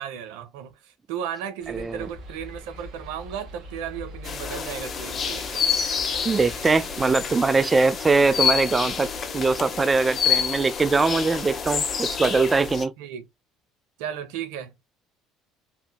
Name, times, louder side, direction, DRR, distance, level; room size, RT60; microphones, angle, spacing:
voice 1, 0.0-5.6 13.0-13.3 14.0-15.0, right 9 dB, 80° right, 0.7 m, -35 dB
sound 1, 1.6-7.1, equal, 65° right, 1.5 m, -42 dB
voice 2, 1.7-2.1 6.3-12.9, right 4 dB, 25° right, 0.3 m, -22 dB
sound 2, 4.2-12.8, left 7 dB, 40° left, 0.9 m, -28 dB
3.6 x 2.7 x 2.2 m
supercardioid pair, 75°, 0 cm